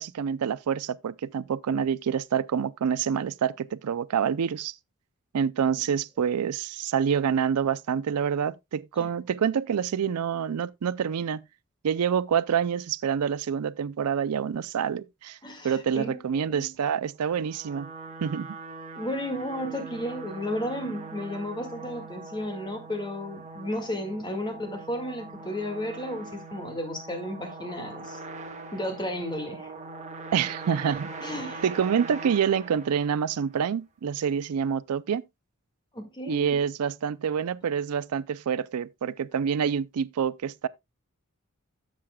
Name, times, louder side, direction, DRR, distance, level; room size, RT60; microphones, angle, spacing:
voice 1, 0.0-4.7 5.3-11.4 11.8-15.4 15.6-17.9 18.2-18.6 30.3-31.1 31.6-35.2 36.3-40.7, right 7 dB, 90° right, 0.4 m, -27 dB
voice 2, 15.4-16.7 19.0-28.2 28.7-29.7 31.2-31.6 35.9-36.6, left 1 dB, 20° left, 1.9 m, -33 dB
sound 1, 17.2-33.5, right 3 dB, 30° right, 1.4 m, -42 dB
12.5 x 7.3 x 2.2 m
head